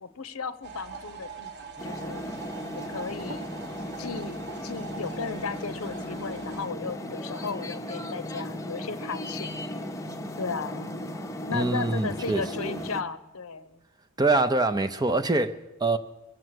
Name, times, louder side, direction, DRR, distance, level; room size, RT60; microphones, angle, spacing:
voice 1, 0.0-2.3 2.7-3.5 4.0-9.5 10.4-10.9 11.5-13.8, left 5 dB, 75° left, 0.8 m, -35 dB
sound 1, 0.6-6.7, right 5 dB, 50° right, 1.0 m, -43 dB
sound 2, 1.8-13.0, left 1 dB, 15° left, 0.8 m, -36 dB
voice 2, 11.5-12.8 14.2-16.0, right 2 dB, 20° right, 0.6 m, -25 dB
22.5 x 7.8 x 7.7 m
head